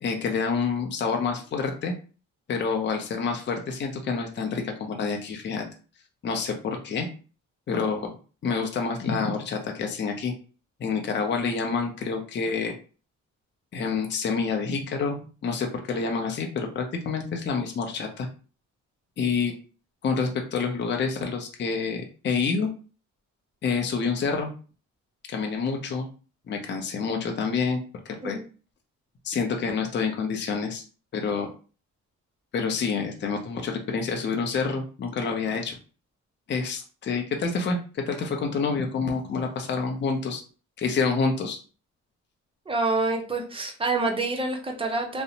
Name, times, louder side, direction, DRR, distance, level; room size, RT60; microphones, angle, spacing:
voice 1, 0.0-1.9 2.5-5.6 6.2-7.1 7.7-8.2 8.4-10.3 10.8-12.7 13.7-18.3 19.2-19.5 20.0-22.7 23.6-24.5 25.3-26.1 26.5-28.4 29.2-30.8 31.1-31.5 32.5-35.8 36.5-40.4 40.8-41.6, left 5 dB, 35° left, 3 dB, 0.5 m, -28 dB
voice 2, 42.7-45.2, right 3 dB, 20° right, 2 dB, 0.6 m, -27 dB
2.5 x 2.1 x 2.8 m, 0.37 s
cardioid pair, 90°, 30 cm